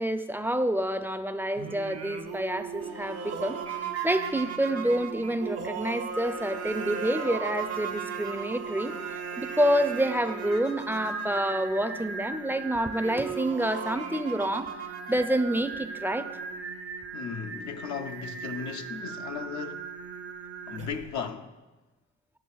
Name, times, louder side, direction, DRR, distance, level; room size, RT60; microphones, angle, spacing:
voice 1, 0.0-14.7 15.1-16.3, right 1 dB, 5° right, 0.4 m, -28 dB
Singing, 1.6-21.2, right 5 dB, 55° right, 0.6 m, -38 dB
sound 1, 2.8-12.1 12.6-12.7 12.9-15.7, right 8 dB, 75° right, 0.9 m, -40 dB
voice 2, 17.1-19.9 20.7-21.6, left 6 dB, 75° left, 0.5 m, -36 dB
10.5 x 6.8 x 2.3 m
cardioid pair, 65°, 30 cm